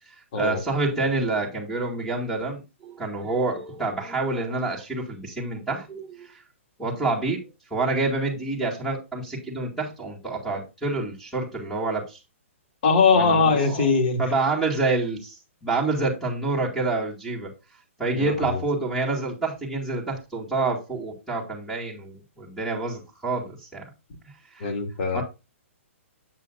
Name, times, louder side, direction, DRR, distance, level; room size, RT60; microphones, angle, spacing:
voice 1, 0.3-6.3 6.8-7.4 7.7-12.2 13.1-13.9 14.2-17.5 18.0-23.8 24.5-24.7 25.1-25.2, right 3 dB, ahead, -1 dB, 2.0 m, -27 dB
voice 2, 12.8-14.2 18.1-18.6 24.6-25.2, left 4 dB, 50° left, 3 dB, 2.4 m, -21 dB
8.1 x 7.6 x 2.5 m, 0.27 s
hypercardioid pair, 155°, 7 cm